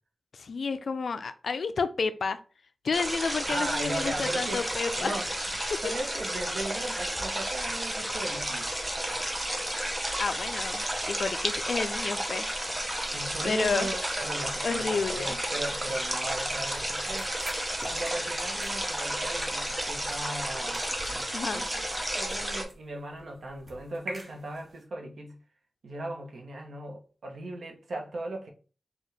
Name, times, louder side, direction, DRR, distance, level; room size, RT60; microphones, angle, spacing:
voice 1, 0.3-2.4 2.8-5.2 5.7-5.8 9.3-9.7 10.2-12.5 13.4-13.9 14.6-15.4 21.3-21.6, left 4 dB, 65° left, 0.4 m, -31 dB
sound 1, 2.9-22.6, right 1 dB, 15° right, 0.7 m, -32 dB
voice 2, 3.5-4.7 5.0-5.3 5.8-8.7 13.1-17.3 17.8-21.2 21.5-21.9 22.2-25.4 25.8-28.5, right 2 dB, 70° right, 0.9 m, -37 dB
sound 2, 16.3-20.5 20.7-24.8, right 1 dB, 45° right, 1.0 m, -47 dB
4.5 x 2.4 x 3.3 m
wide cardioid pair, 135°, 0 cm